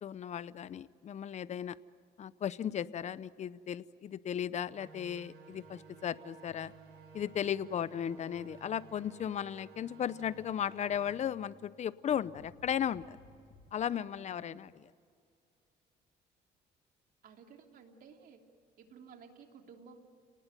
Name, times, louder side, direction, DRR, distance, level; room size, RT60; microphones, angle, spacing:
voice 1, 0.0-1.8 2.2-6.7 7.1-13.0 13.7-14.7, left 9 dB, 45° left, 17 dB, 0.7 m, -36 dB
sound 1, 4.6-11.2, right 5 dB, 85° right, 5.5 m, -56 dB
sound 2, 5.5-13.7, left 2 dB, 85° left, 4.8 m, -61 dB
voice 2, 13.9-14.6 17.2-18.4 18.8-20.0, right 6 dB, 60° right, 3 dB, 3.2 m, -55 dB
30.0 x 19.5 x 9.1 m, 2.3 s
cardioid pair, 110°, 17 cm